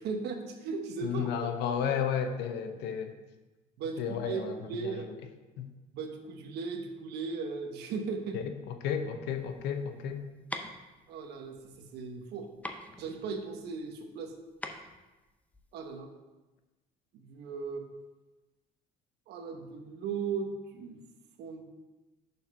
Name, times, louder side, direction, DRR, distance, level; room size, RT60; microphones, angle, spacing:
voice 1, 0.0-1.3 3.8-5.1 5.9-8.4 11.1-12.5 13.0-14.4 15.7-16.1 17.1-17.9 19.3-21.0 21.4-21.6, right 5 dB, 75° right, 5 dB, 1.0 m, -37 dB
voice 2, 1.0-3.1 4.0-5.1 5.6-5.7 8.3-10.2, left 7 dB, 90° left, 8 dB, 0.7 m, -33 dB
sound 1, 9.3-16.0, left 1 dB, 10° left, 0.6 m, -44 dB
6.7 x 4.4 x 5.5 m, 1.1 s
cardioid pair, 110°, 17 cm